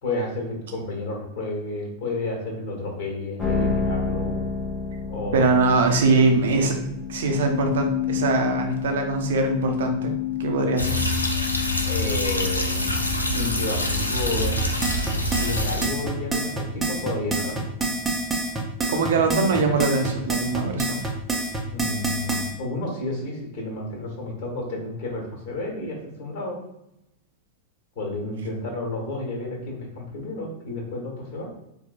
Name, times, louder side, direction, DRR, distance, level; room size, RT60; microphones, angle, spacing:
voice 1, 0.0-4.4 5.1-5.5 11.8-13.0 13.3-14.5 15.4-17.6 21.7-26.6 27.9-31.5, left 2 dB, 45° left, -1 dB, 1.3 m, -31 dB
sound 1, 3.4-15.7, left 7 dB, 20° left, 0.7 m, -30 dB
voice 2, 5.3-6.8 7.1-10.1 10.4-11.1 18.9-21.0, right 3 dB, 60° right, 4 dB, 0.6 m, -22 dB
sound 2, 10.8-15.9, left 1 dB, 80° left, 0.4 m, -25 dB
sound 3, 14.6-22.5, right 2 dB, 15° right, 0.7 m, -27 dB
4.3 x 2.1 x 2.5 m, 0.84 s
figure-of-eight pair, 90°, 0 cm